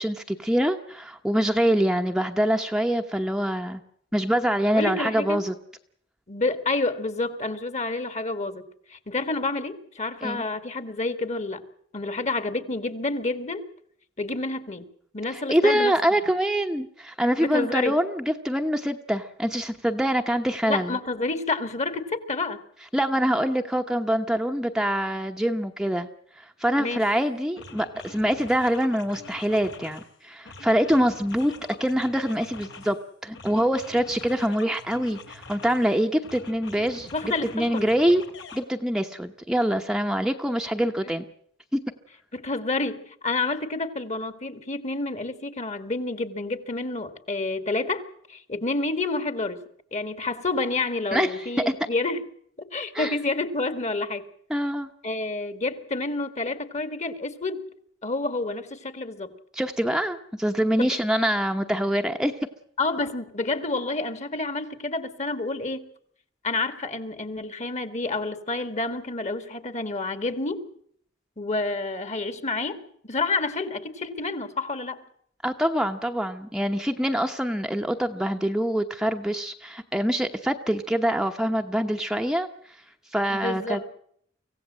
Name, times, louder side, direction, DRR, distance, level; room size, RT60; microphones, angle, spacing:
voice 1, 0.0-3.8 4.1-5.5 10.2-10.4 15.3-21.0 22.9-26.1 26.4-31.5 31.8-33.0 33.2-38.2 38.5-41.2 41.7-41.8 51.1-51.7 52.9-53.2 54.5-54.9 59.5-62.3 75.4-82.5 83.1-83.9, equal, 5° right, 4 dB, 1.0 m, -25 dB
voice 2, 4.7-5.4 6.3-8.6 8.9-11.6 11.9-13.6 14.2-14.8 15.1-16.0 17.4-18.0 20.7-22.6 26.8-27.0 37.1-37.9 42.3-49.6 49.9-52.2 52.6-54.2 55.0-57.7 58.0-59.3 60.8-61.0 62.8-65.9 66.4-70.7 71.4-75.0 83.3-83.8, left 3 dB, 40° left, 11 dB, 1.9 m, -29 dB
sound 1, 27.0-27.2 27.6-30.1 30.4-33.0 33.3-35.9 36.2-38.6, left 3 dB, 75° left, 3.2 m, -45 dB
25.0 x 16.5 x 7.5 m, 0.66 s
head